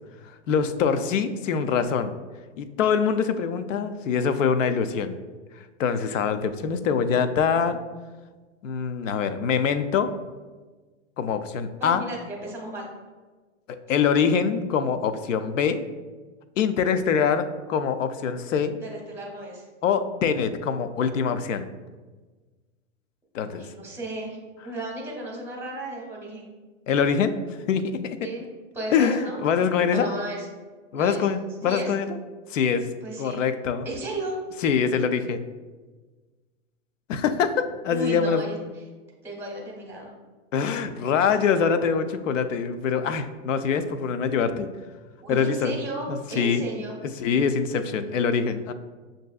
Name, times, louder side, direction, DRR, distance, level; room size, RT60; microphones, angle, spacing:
voice 1, 0.5-2.1 2.6-5.2 5.8-7.8 8.6-10.1 11.2-12.0 13.7-15.8 16.6-18.7 19.8-21.7 23.3-23.6 26.9-27.3 27.7-28.2 28.9-30.1 30.9-32.1 32.5-32.9 33.2-33.9 34.6-35.4 37.1-38.5 40.5-44.7 45.3-45.8 46.1-46.6 47.2-48.7, left 6 dB, 80° left, 10 dB, 0.5 m, -24 dB
voice 2, 11.8-12.9 18.7-19.6 23.5-26.5 28.2-28.4 28.7-29.4 29.9-30.5 31.0-31.3 31.6-31.9 33.0-33.5 33.8-34.4 37.9-38.6 39.2-40.1 45.2-47.0, right 1 dB, 5° right, -1 dB, 0.8 m, -34 dB
6.5 x 2.6 x 2.3 m, 1.3 s
hypercardioid pair, 125°, 37 cm